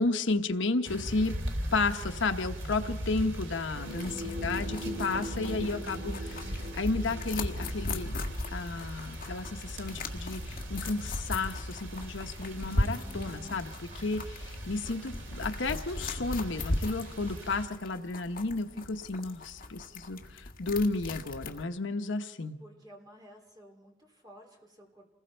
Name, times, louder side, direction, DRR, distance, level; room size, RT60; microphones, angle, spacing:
voice 1, 0.0-1.3 1.7-8.1 8.5-22.6, left 3 dB, 65° left, 8 dB, 1.0 m, -32 dB
sound 1, 0.8-17.7, equal, 70° right, 3.0 m, -40 dB
sound 2, 3.7-9.6 10.6-10.7 12.4-13.5, equal, 45° right, 1.8 m, -43 dB
voice 2, 3.8-4.2 22.6-25.1, equal, 20° right, 1 dB, 3.7 m, -54 dB
sound 3, 3.9-21.6, left 2 dB, 45° left, 1.6 m, -38 dB
28.5 x 20.5 x 4.5 m, 1.0 s
head